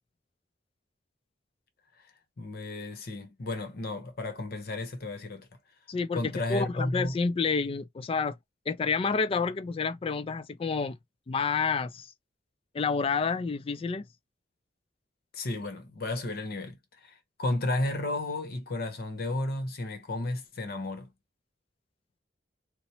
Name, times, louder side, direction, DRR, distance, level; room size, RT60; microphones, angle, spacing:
voice 1, 2.4-5.5 6.1-7.2 15.3-21.1, left 2 dB, 55° left, 0.8 m, -33 dB
voice 2, 5.9-8.3 8.7-11.0 11.3-12.1 12.7-14.1, left 5 dB, 30° left, 0.3 m, -29 dB
3.0 x 2.0 x 2.7 m
head